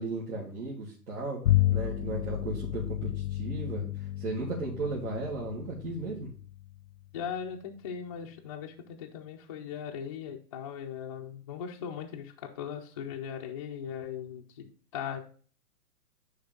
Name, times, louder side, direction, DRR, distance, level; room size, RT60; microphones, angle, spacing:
voice 1, 0.0-1.4 1.7-6.3, right 2 dB, 75° right, -6 dB, 2.3 m, -35 dB
Bowed string instrument, 1.4-7.1, left 14 dB, 85° left, 0.8 m, -31 dB
voice 2, 7.1-15.2, left 8 dB, 25° left, 0 dB, 0.3 m, -39 dB
9.5 x 3.3 x 3.7 m, 0.42 s
hypercardioid pair, 125°, 46 cm